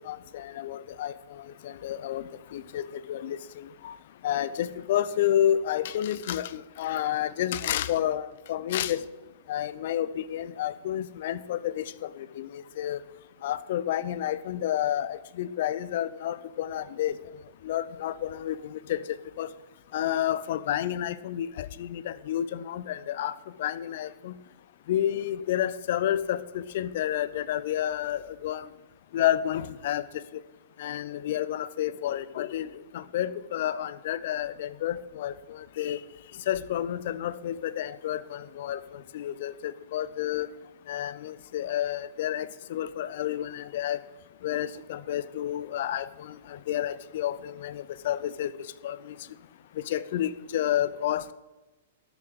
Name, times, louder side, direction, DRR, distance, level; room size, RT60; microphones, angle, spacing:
voice 1, 0.1-1.1 1.6-2.2 2.5-3.4 3.8-3.9 4.2-9.0 9.5-12.1 12.4-13.0 13.4-17.1 17.6-19.0 19.4-19.5 19.9-23.3 23.6-24.3 24.9-28.6 29.1-30.0 30.8-32.7 32.9-35.3 35.8-36.0 36.5-38.8 39.1-40.5 40.9-44.0 44.4-46.1 46.7-48.5 48.8-49.0 49.9-51.3, left 11 dB, 55° left, 17 dB, 0.8 m, -30 dB
12.0 x 7.2 x 7.8 m, 1.1 s
hypercardioid pair, 110°, 0 cm